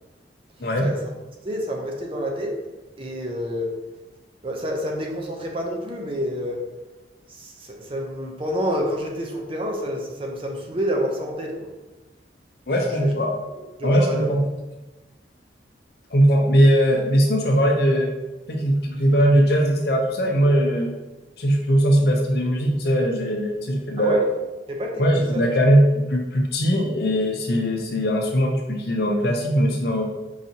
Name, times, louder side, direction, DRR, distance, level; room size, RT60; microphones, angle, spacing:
voice 1, 1.4-2.6 3.0-3.7 4.4-6.6 7.3-11.7 12.9-13.1 13.8-14.3 24.0-24.2 24.7-25.4, equal, 30° right, 0 dB, 0.5 m, -28 dB
voice 2, 12.7-13.3 13.8-14.4 16.1-18.1 18.5-20.9 21.4-24.2 25.0-30.1, equal, 60° left, 1 dB, 0.6 m, -20 dB
4.8 x 2.7 x 2.7 m, 1.1 s
head